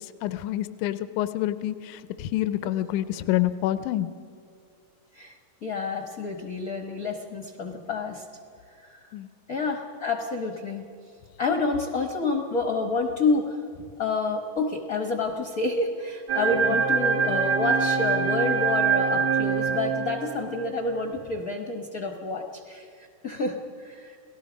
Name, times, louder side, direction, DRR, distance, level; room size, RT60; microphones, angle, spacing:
voice 1, 0.0-4.1 9.1-9.3 16.7-16.8, left 14 dB, 80° left, 13 dB, 2.1 m, -28 dB
voice 2, 5.6-8.2 8.8-9.0 9.5-10.8 11.4-13.6 14.0-24.2, left 3 dB, 45° left, 4 dB, 1.2 m, -29 dB
sound 1, 16.3-20.8, right 5 dB, 35° right, 1.8 m, -24 dB
30.0 x 18.0 x 5.2 m, 2.4 s
omnidirectional pair, 3.5 m